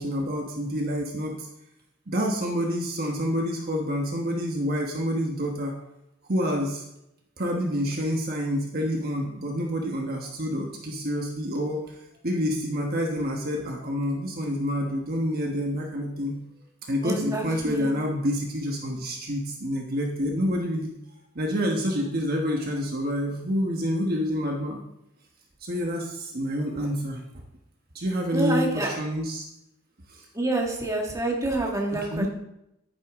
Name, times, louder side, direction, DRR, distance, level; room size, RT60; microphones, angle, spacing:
voice 1, 0.0-1.5 2.1-5.8 6.3-6.8 7.4-11.8 12.2-16.4 16.9-20.9 21.3-24.8 25.6-27.2 27.9-29.4 30.1-30.2 31.9-32.3, equal, 45° right, 1 dB, 1.3 m, -28 dB
voice 2, 17.0-17.9 28.3-29.0 30.4-32.3, right 2 dB, 15° right, -1 dB, 1.8 m, -27 dB
10.5 x 10.0 x 3.6 m, 0.83 s
head